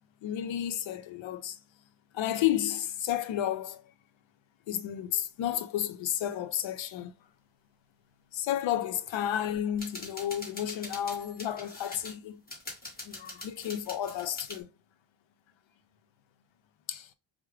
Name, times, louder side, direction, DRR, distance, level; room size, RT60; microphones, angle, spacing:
voice 1, 0.2-1.6 2.1-3.8 4.7-7.1 8.3-12.4 13.0-14.7 16.9-17.1, left 11 dB, 85° left, 0.7 m, -32 dB
sound 1, 9.7-12.2 12.5-14.6, left 2 dB, 20° left, 1.6 m, -44 dB
4.7 x 2.1 x 3.2 m
cardioid pair, 120°, 45 cm